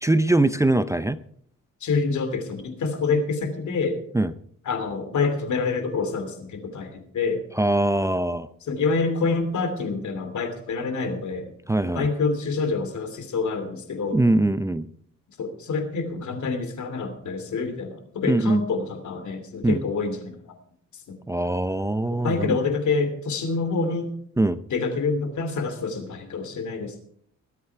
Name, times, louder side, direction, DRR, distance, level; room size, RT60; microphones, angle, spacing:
voice 1, 0.0-1.2 4.1-4.3 7.6-8.5 11.7-12.1 14.1-14.9 18.3-18.6 19.6-19.8 21.3-22.6 24.4-24.6, right 2 dB, 10° right, 12 dB, 0.5 m, -22 dB
voice 2, 1.8-4.0 4.7-7.4 8.7-11.5 11.9-14.2 15.4-20.4 21.1-21.2 22.1-24.1 24.7-27.0, left 4 dB, 70° left, 9 dB, 2.8 m, -27 dB
21.0 x 8.5 x 4.6 m, 0.63 s
cardioid pair, 105°, 31 cm